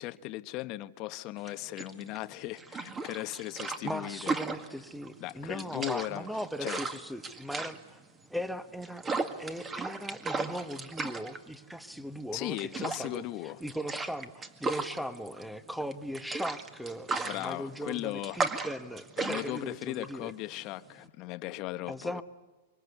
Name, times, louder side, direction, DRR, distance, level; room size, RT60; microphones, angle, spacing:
voice 1, 0.0-4.4 5.2-6.3 6.6-6.8 12.3-13.6 17.2-18.4 19.2-22.2, left 17 dB, 40° left, 1.1 m, -37 dB
sound 1, 1.4-21.1, right 3 dB, 15° right, 1.9 m, -36 dB
voice 2, 3.8-8.0 8.3-9.0 9.4-13.2 13.6-20.3 21.9-22.2, equal, ahead, 1.2 m, -38 dB
25.5 x 24.0 x 8.3 m
hypercardioid pair, 130°, 0 cm